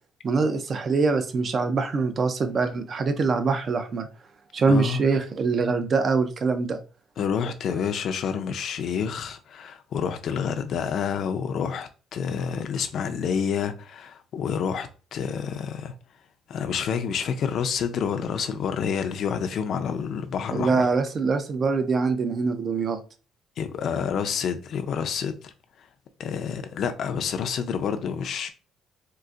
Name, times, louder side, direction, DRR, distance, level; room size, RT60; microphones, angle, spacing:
voice 1, 0.2-4.1 4.5-6.8 20.5-23.0, right 4 dB, 35° right, 0.4 m, -24 dB
voice 2, 4.7-5.0 7.2-15.9 16.5-20.9 23.6-25.5 26.2-28.5, left 7 dB, 55° left, 0.4 m, -28 dB
3.8 x 2.4 x 2.4 m
cardioid pair, 140°, 0 cm